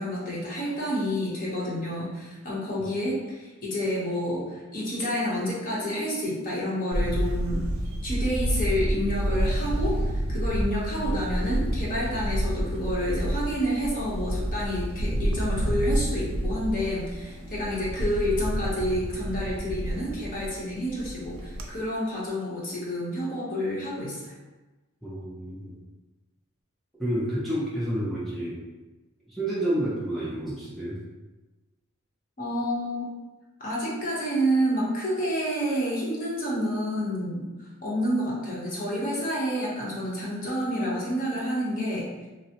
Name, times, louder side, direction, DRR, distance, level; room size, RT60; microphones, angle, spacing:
voice 1, 0.0-7.6 8.0-24.3 32.4-33.1 33.6-37.4 37.8-42.3, equal, 40° left, -5 dB, 0.8 m, -29 dB
Camera, 6.9-21.7, equal, 80° right, 0.4 m, -29 dB
voice 2, 25.0-25.7 27.0-28.6 29.3-31.0, right 1 dB, ahead, -9 dB, 0.5 m, -29 dB
3.2 x 2.0 x 2.8 m, 1.1 s
head